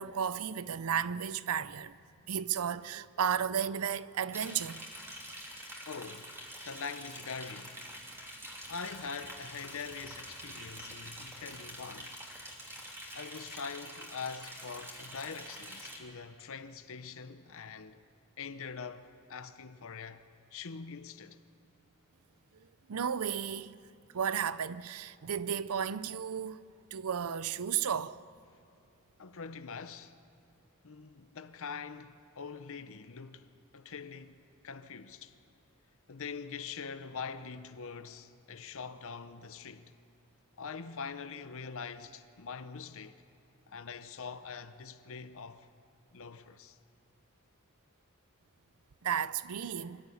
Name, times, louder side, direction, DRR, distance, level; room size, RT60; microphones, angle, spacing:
voice 1, 0.0-2.0 2.3-4.8 22.9-23.7 24.1-26.6 26.9-28.2 49.0-50.0, right 8 dB, 75° right, 0.6 m, -33 dB
Liquid, 4.3-16.0, equal, 10° right, 3.0 m, -46 dB
voice 2, 5.9-6.3 6.6-7.8 8.7-12.2 13.1-18.0 18.4-21.4 29.2-30.2 30.8-33.5 33.7-35.3 36.1-39.9 40.6-43.2 43.7-45.7 46.1-46.8, left 5 dB, 65° left, 0.8 m, -43 dB
25.5 x 13.5 x 8.5 m
head